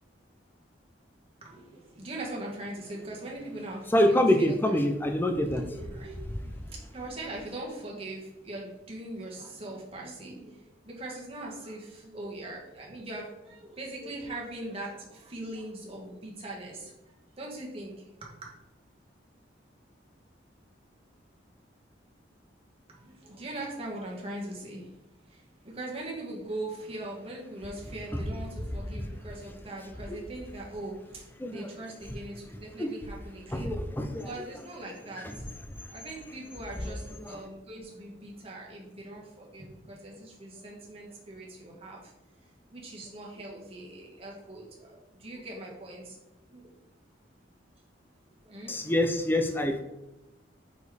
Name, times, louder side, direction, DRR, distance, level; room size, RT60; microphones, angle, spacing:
voice 1, 1.4-4.7 5.4-16.9 17.3-18.1 22.9-24.9 25.3-35.4 35.9-42.0 42.7-46.2 46.5-46.8 48.4-48.8, right 1 dB, 30° right, -3 dB, 1.5 m, -41 dB
voice 2, 3.9-5.6 28.1-28.2 30.1-30.2 31.4-31.7 32.8-32.9 33.5-34.3 35.2-35.3 36.8-37.0 48.7-49.8, left 1 dB, 10° left, 6 dB, 0.6 m, -26 dB
5.2 x 4.3 x 4.9 m, 0.93 s
head